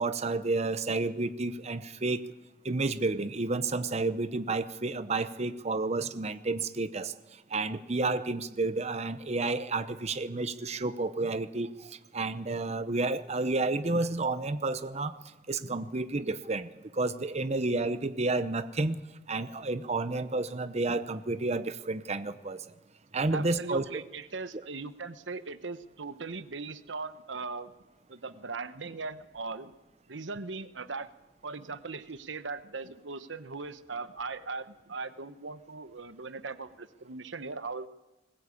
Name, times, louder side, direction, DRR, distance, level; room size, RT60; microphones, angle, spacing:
voice 1, 0.0-2.2 2.6-7.1 7.5-15.1 15.5-19.0 19.3-22.6 23.1-23.8, right 3 dB, 35° right, 11 dB, 0.8 m, -31 dB
voice 2, 23.3-27.7 28.1-29.7 30.1-31.1 31.4-37.9, right 4 dB, 85° right, 12 dB, 1.1 m, -39 dB
21.0 x 20.5 x 8.5 m, 1.0 s
head